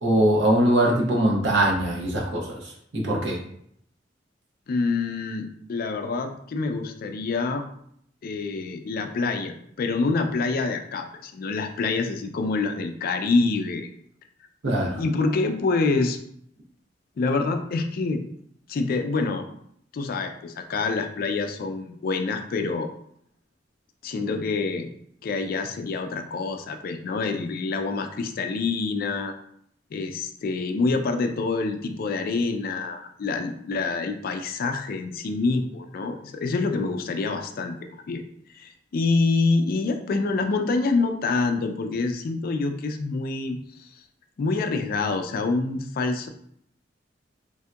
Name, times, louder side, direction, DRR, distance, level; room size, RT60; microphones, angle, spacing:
voice 1, 0.0-2.6 2.9-3.4 14.6-15.0, right 1 dB, 90° right, -2 dB, 0.9 m, -22 dB
voice 2, 4.7-7.6 8.2-13.9 14.9-16.2 17.2-18.2 18.7-19.5 19.9-22.9 24.0-24.9 25.2-29.3 29.9-38.2 38.5-43.9 44.4-46.3, left 3 dB, 55° left, 6 dB, 0.3 m, -26 dB
3.6 x 2.7 x 2.2 m, 0.68 s
head